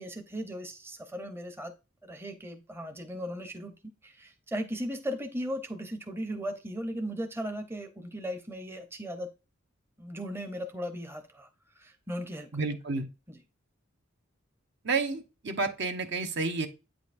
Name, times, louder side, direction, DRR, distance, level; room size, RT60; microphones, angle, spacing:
voice 1, 0.0-1.7 2.0-3.7 4.0-9.3 10.0-11.5 11.8-12.5 13.3-13.4, equal, 10° right, 6 dB, 0.7 m, -37 dB
voice 2, 12.5-13.1 14.8-16.7, right 3 dB, 60° right, 7 dB, 0.9 m, -30 dB
8.6 x 5.1 x 2.5 m, 0.29 s
head